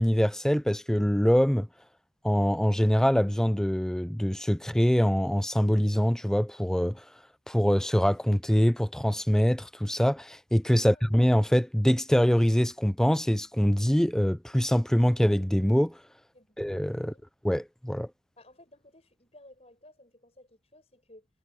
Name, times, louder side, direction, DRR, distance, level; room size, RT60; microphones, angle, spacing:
voice 1, 0.0-1.7 2.2-7.0 7.5-16.0 16.6-17.1 17.4-18.1, equal, 5° left, 0.4 m, -24 dB
voice 2, 18.4-21.3, left 1 dB, 30° left, 7.5 m, -56 dB
head